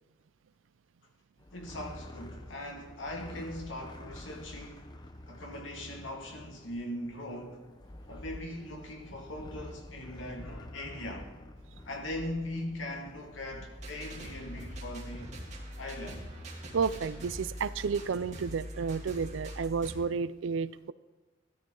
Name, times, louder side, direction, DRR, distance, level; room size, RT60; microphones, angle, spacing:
sound 1, 1.4-17.7, left 1 dB, 25° left, 0.8 m, -49 dB
voice 1, 1.5-4.9 5.3-7.6 8.1-11.3 11.9-15.3 15.8-16.3, left 1 dB, 80° left, 2.1 m, -40 dB
sound 2, 13.7-20.0, equal, 40° right, 2.6 m, -43 dB
voice 2, 16.7-20.9, right 5 dB, 85° right, 0.4 m, -31 dB
14.0 x 12.5 x 3.8 m
head